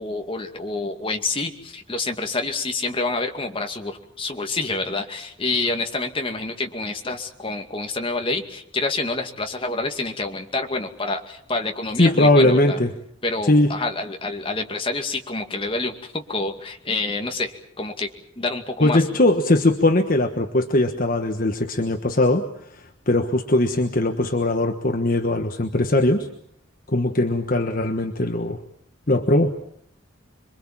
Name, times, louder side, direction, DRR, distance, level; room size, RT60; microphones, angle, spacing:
voice 1, 0.0-12.8 13.2-18.1 18.4-19.0, left 3 dB, 25° left, 4 dB, 2.3 m, -27 dB
voice 2, 12.0-12.9 13.5-13.7 18.8-22.4 22.7-26.3 26.9-28.6 29.1-29.5, left 1 dB, 45° left, 5 dB, 1.3 m, -20 dB
27.0 x 23.5 x 7.4 m, 0.68 s
head